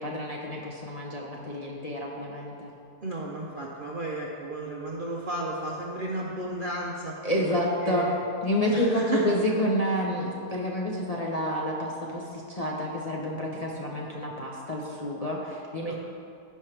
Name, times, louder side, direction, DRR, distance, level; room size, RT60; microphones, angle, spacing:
voice 1, 0.0-2.7 7.2-8.1 8.4-16.0, equal, 30° left, -4 dB, 0.7 m, -29 dB
voice 2, 3.0-8.2 8.7-9.3 15.9-16.0, right 2 dB, 45° right, -3 dB, 0.7 m, -33 dB
16.0 x 5.5 x 3.3 m, 2.5 s
omnidirectional pair, 1.7 m